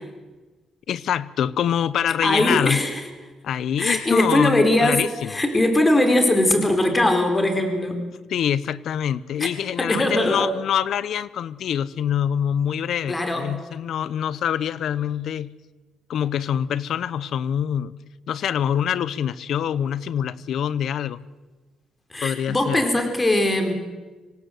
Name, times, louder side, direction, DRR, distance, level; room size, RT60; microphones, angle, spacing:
voice 1, 0.9-2.8 3.4-5.4 8.3-15.5 16.1-18.0 18.3-21.2 22.2-22.8, left 9 dB, 70° left, 18 dB, 0.9 m, -25 dB
voice 2, 2.2-3.0 3.8-5.0 5.3-8.0 9.4-9.5 9.8-10.5 13.1-13.5 22.1-23.7, left 1 dB, 20° left, 6 dB, 4.4 m, -20 dB
26.0 x 17.5 x 8.0 m, 1.3 s
cardioid pair, 90°, 0 cm